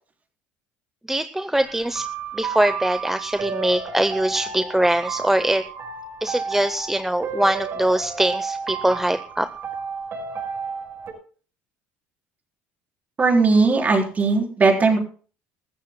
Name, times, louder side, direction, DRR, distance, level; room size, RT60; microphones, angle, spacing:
voice 1, 1.1-2.1 2.3-5.6 6.2-9.5, right 1 dB, 5° right, 11 dB, 0.6 m, -22 dB
sound 1, 1.5-11.1, right 5 dB, 50° right, 5.3 m, -32 dB
voice 2, 13.2-15.0, right 4 dB, 30° right, 1 dB, 4.0 m, -18 dB
21.5 x 14.0 x 2.2 m, 0.40 s
supercardioid pair, 95°, 5 cm